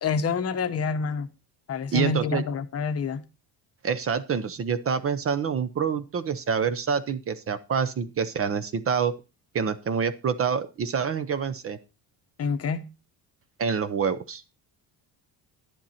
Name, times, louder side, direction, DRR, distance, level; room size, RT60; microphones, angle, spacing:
voice 1, 0.0-1.3 1.7-3.2 12.4-12.9, left 5 dB, 35° left, 0.9 m, -27 dB
voice 2, 1.9-2.4 3.8-9.1 9.5-11.8 13.6-14.4, right 6 dB, 35° right, 0.8 m, -27 dB
10.5 x 10.5 x 4.3 m
cardioid pair, 170°, 41 cm